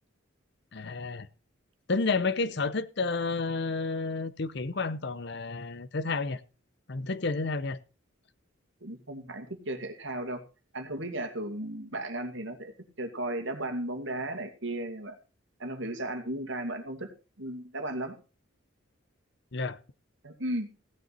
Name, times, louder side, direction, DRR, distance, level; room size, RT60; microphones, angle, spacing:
voice 1, 0.7-1.3 1.9-6.4 6.9-7.8 19.5-19.8, left 3 dB, 55° left, 0.8 m, -30 dB
voice 2, 8.8-10.4 10.7-12.7 13.0-15.2 15.6-17.1 17.4-18.2 20.2-20.7, right 1 dB, 65° right, 2.3 m, -35 dB
16.0 x 9.4 x 4.2 m
head